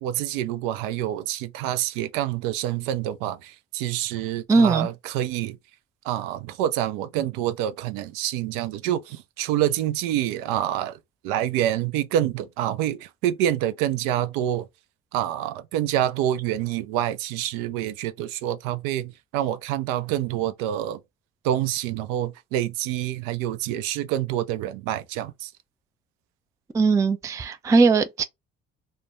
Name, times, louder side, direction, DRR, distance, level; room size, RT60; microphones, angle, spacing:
voice 1, 0.0-5.6 6.0-11.0 11.2-14.7 15.1-21.0 21.4-25.5, right 12 dB, 65° right, 0.5 m, -27 dB
voice 2, 4.5-4.9 26.7-28.2, right 4 dB, 10° right, 0.3 m, -19 dB
2.5 x 2.1 x 3.0 m
figure-of-eight pair, 50°, 37 cm